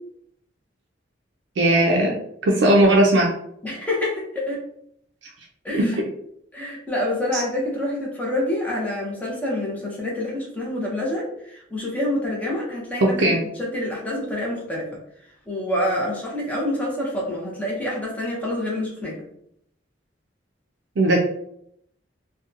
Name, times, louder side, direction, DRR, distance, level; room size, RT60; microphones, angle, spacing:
voice 1, 1.6-2.1 2.4-3.3 5.7-5.8 7.3-7.4 13.2-13.4 21.0-21.2, right 1 dB, 70° right, 0 dB, 0.4 m, -17 dB
voice 2, 3.6-4.6 5.6-6.0 6.5-14.9 15.5-19.2, left 1 dB, 10° left, -4 dB, 0.7 m, -27 dB
2.7 x 2.2 x 2.4 m, 0.72 s
head